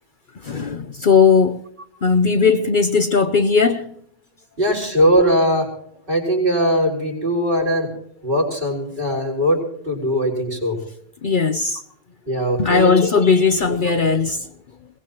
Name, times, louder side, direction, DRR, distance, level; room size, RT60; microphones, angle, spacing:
voice 1, 0.4-1.6 2.0-4.0 11.2-11.8 12.6-14.5, left 5 dB, 50° left, 0.9 m, -17 dB
voice 2, 4.6-5.7 6.1-7.9 8.2-10.8 12.3-13.1 13.6-14.0, equal, 50° right, 5.6 m, -20 dB
22.0 x 19.5 x 3.0 m
omnidirectional pair, 1.2 m